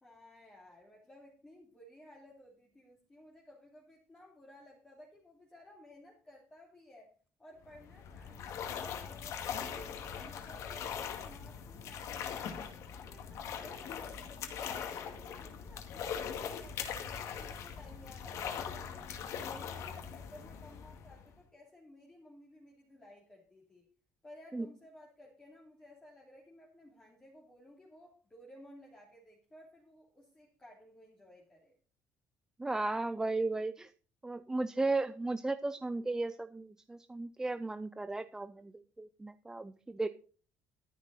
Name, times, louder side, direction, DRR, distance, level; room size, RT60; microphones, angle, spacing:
voice 1, 0.0-7.1 7.4-12.6 12.9-19.1 19.4-23.9 24.2-31.8, left 1 dB, 15° left, -4 dB, 3.0 m, -57 dB
sound 1, 7.6-21.4, left 7 dB, 60° left, 2.1 m, -41 dB
voice 2, 32.6-33.9 34.2-40.1, right 2 dB, 10° right, 12 dB, 0.4 m, -35 dB
12.5 x 10.0 x 4.1 m, 0.39 s
cardioid pair, 160°, 6 cm